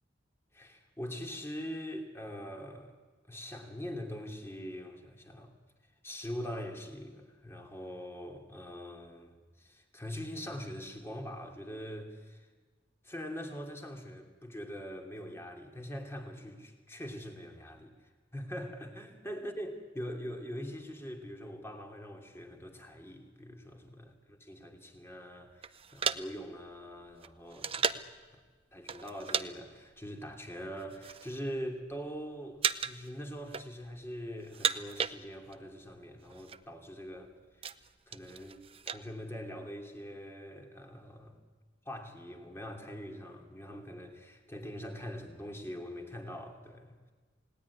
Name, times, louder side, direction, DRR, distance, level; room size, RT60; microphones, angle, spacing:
voice 1, 0.5-2.9 3.3-5.5 6.0-12.5 13.0-17.9 18.3-28.1 28.7-37.7 38.1-41.4 41.8-46.9, equal, 15° left, 3 dB, 2.9 m, -43 dB
sound 1, 25.6-28.2 28.9-29.5 29.7-29.9 30.6-31.4 31.7-32.2 32.6-33.1 33.4-34.0 34.4-35.7 35.9-36.0 36.2-36.6 37.1-39.0, right 7 dB, 30° right, 0.7 m, -35 dB
28.0 x 18.5 x 9.8 m, 1.4 s
head